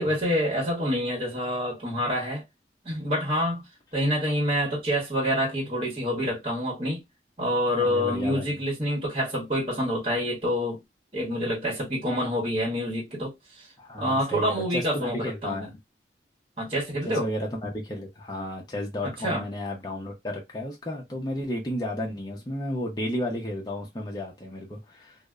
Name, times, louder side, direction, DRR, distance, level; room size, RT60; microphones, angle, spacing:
voice 1, 0.0-2.4 2.8-3.7 3.9-7.0 7.4-10.8 11.1-13.7 14.0-15.7 16.6-17.3 19.0-19.5, equal, 35° right, 1.0 m, -27 dB
voice 2, 7.8-8.6 13.8-15.8 17.0-25.2, left 1 dB, 20° left, 0.5 m, -33 dB
2.6 x 2.0 x 2.3 m
head